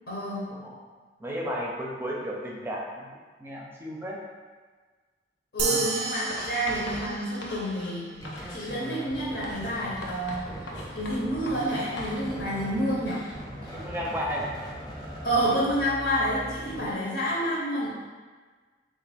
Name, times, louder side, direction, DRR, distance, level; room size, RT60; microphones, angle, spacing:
voice 1, 0.1-0.6 5.5-8.1 8.5-10.5 10.9-13.2 13.6-13.7 15.2-18.0, equal, 65° left, -7 dB, 0.8 m, -28 dB
voice 2, 1.2-3.1 3.4-4.2 5.6-6.0 13.7-14.6, equal, 15° right, -3 dB, 0.6 m, -33 dB
sound 1, 5.6-8.3, right 4 dB, 70° right, 0.4 m, -33 dB
Writing, 6.3-8.0 8.2-8.8 9.4-12.2, left 1 dB, 90° left, 0.6 m, -40 dB
sound 2, 8.1-16.9, equal, 25° left, 0.7 m, -40 dB
3.3 x 2.5 x 4.1 m, 1.4 s
head